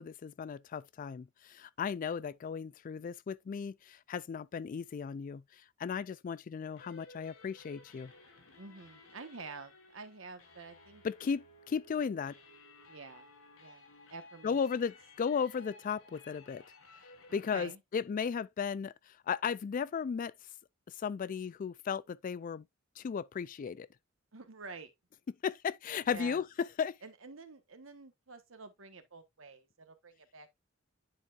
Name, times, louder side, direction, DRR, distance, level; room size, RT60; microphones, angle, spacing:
voice 1, 0.0-5.4 5.8-8.1 11.0-12.4 14.4-16.6 17.3-20.3 21.0-22.6 23.0-23.9 25.4-27.0, left 6 dB, 40° left, 0.3 m, -35 dB
sound 1, 6.6-17.7, left 2 dB, 90° left, 1.5 m, -57 dB
voice 2, 8.6-11.0 12.9-13.3 13.6-14.8 17.3-17.8 24.3-24.9 26.1-26.4 27.0-30.5, right 4 dB, 70° right, 1.2 m, -49 dB
9.9 x 4.5 x 2.4 m
head